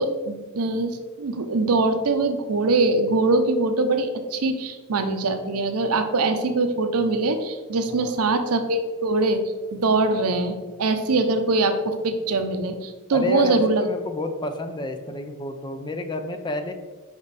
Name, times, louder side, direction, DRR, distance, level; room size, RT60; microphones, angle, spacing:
voice 1, 0.0-9.4 9.7-13.9, right 2 dB, 75° right, 8 dB, 0.7 m, -23 dB
voice 2, 13.1-16.7, left 1 dB, 20° left, 6 dB, 0.5 m, -30 dB
5.2 x 5.2 x 4.1 m, 1.3 s
head